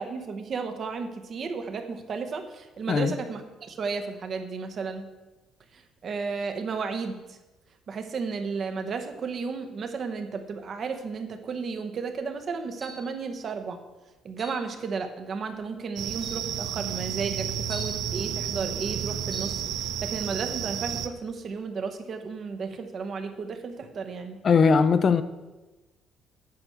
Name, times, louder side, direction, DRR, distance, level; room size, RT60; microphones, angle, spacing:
voice 1, 0.0-5.1 5.7-7.4 7.9-13.8 14.2-24.4, right 5 dB, 35° right, 1.0 m, -33 dB
sound 1, 12.8-13.2 14.4-14.7 15.6-15.7 16.2-16.5 17.7-18.0 19.3-19.6, right 1 dB, 10° right, 1.2 m, -41 dB
sound 2, 16.0-21.1, right 9 dB, 65° right, 0.6 m, -31 dB
voice 2, 24.4-25.2, left 5 dB, 30° left, 0.4 m, -20 dB
9.5 x 6.1 x 6.7 m
cardioid pair, 175°, 0 cm